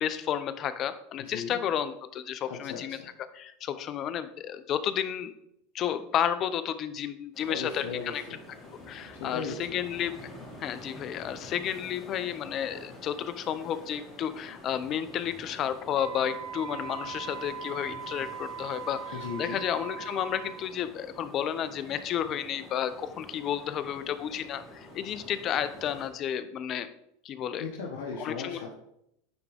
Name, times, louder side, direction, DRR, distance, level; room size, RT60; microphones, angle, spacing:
voice 1, 0.0-5.3 5.7-8.2 8.9-10.3 10.6-26.9 27.2-27.6 28.2-28.6, left 9 dB, 40° left, 12 dB, 0.6 m, -32 dB
voice 2, 1.2-1.6 2.5-3.1 7.5-8.4 9.1-9.7 19.1-19.6 27.6-28.7, left 5 dB, 70° left, -2 dB, 1.2 m, -37 dB
sound 1, 7.3-26.1, left 1 dB, 15° left, 2.3 m, -48 dB
Wind instrument woodwind instrument, 15.9-20.7, right 8 dB, 65° right, 0.5 m, -40 dB
9.5 x 3.6 x 3.4 m, 0.76 s
supercardioid pair, 115°, 0 cm